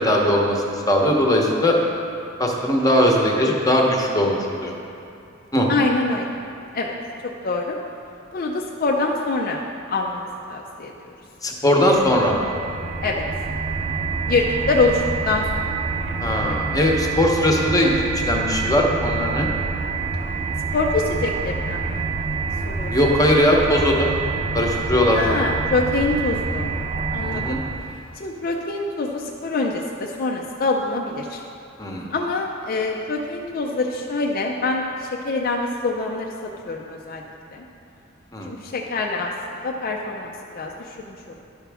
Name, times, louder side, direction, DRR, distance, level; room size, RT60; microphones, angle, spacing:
voice 1, 0.0-1.8 2.4-4.7 5.5-5.7 11.4-12.3 16.2-17.9 18.2-19.5 22.9-24.1 24.5-25.4 27.3-27.6 31.8-32.1 38.3-38.5, left 1 dB, 15° left, 0 dB, 0.8 m, -19 dB
voice 2, 5.7-6.4 6.7-6.9 7.4-7.8 8.3-9.6 9.9-10.9 13.0-13.2 14.3-15.8 20.7-22.0 22.7-22.9 25.1-26.7 27.1-27.6 28.2-31.4 32.1-37.2 37.5-37.6 38.5-41.3, left 3 dB, 45° left, 0 dB, 0.5 m, -25 dB
sound 1, 11.8-28.0, right 4 dB, 30° right, 0.4 m, -27 dB
11.5 x 6.0 x 3.4 m, 2.6 s
head